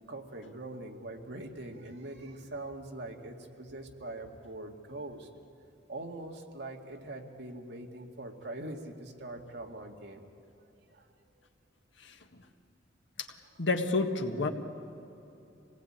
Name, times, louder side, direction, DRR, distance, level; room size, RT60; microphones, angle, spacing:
voice 1, 0.1-5.3 5.9-10.2 10.9-11.3, right 2 dB, 65° right, 2 dB, 2.2 m, -43 dB
voice 2, 12.0-12.4 13.2-13.3 13.6-14.5, left 3 dB, 75° left, 5 dB, 1.7 m, -30 dB
26.5 x 18.5 x 8.9 m, 2.9 s
head